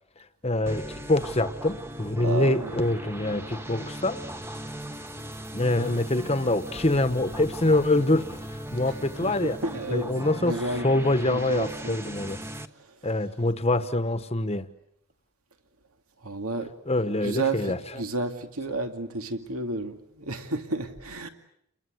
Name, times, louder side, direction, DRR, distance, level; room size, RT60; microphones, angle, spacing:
voice 1, 0.4-4.2 5.5-8.3 8.7-9.6 9.9-10.6 10.8-12.4 13.0-14.7 16.9-17.8, left 2 dB, 25° left, 1.2 m, -25 dB
sound 1, 0.7-12.7, right 1 dB, 10° right, 1.0 m, -38 dB
voice 2, 2.2-2.7 7.9-8.0 8.8-10.1 10.4-10.9 11.3-12.0 12.9-13.0 16.2-16.7 17.2-21.3, right 2 dB, 80° right, 2.3 m, -32 dB
29.5 x 22.5 x 8.0 m
head